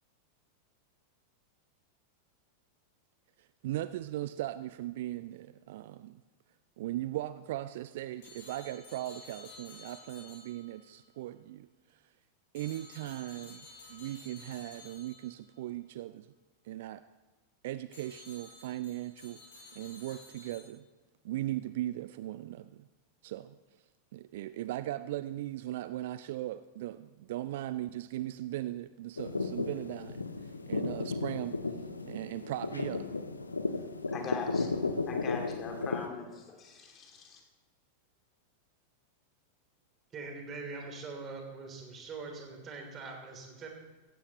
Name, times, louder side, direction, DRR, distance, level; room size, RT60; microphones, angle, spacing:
voice 1, 3.4-6.2 6.8-12.0 12.5-16.3 16.6-17.0 17.6-19.4 19.8-20.8 21.2-22.9 23.2-23.6 24.1-31.6 32.0-33.1, right 14 dB, 55° right, 14 dB, 0.4 m, -38 dB
sound 1, 8.2-11.0 12.5-15.5 17.9-20.6, left 3 dB, 55° left, 5.0 m, -52 dB
sound 2, 29.2-36.1, left 3 dB, 80° left, 0.8 m, -34 dB
voice 2, 34.1-37.4, left 5 dB, 30° left, 2 dB, 2.4 m, -41 dB
voice 3, 40.1-43.7, right 4 dB, 25° right, 2 dB, 3.1 m, -43 dB
16.5 x 15.0 x 3.0 m, 1.2 s
figure-of-eight pair, 90°, 0 cm